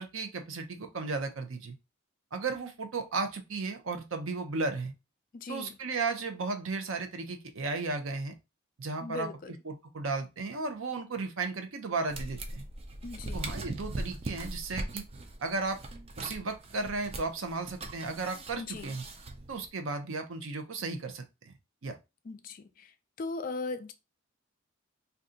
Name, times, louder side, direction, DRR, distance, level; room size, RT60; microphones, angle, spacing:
voice 1, 0.0-1.7 2.3-4.9 5.5-8.3 8.8-9.3 9.7-12.7 13.3-15.0 15.4-15.8 16.2-19.0 19.5-21.5 21.8-22.0, right 3 dB, 75° right, 0.6 m, -34 dB
voice 2, 5.3-5.8 9.0-9.5 13.0-13.5 18.6-19.0 22.2-23.9, left 3 dB, 40° left, 0.4 m, -39 dB
sound 1, 12.1-19.7, right 2 dB, 30° right, 0.4 m, -40 dB
2.6 x 2.3 x 3.7 m
head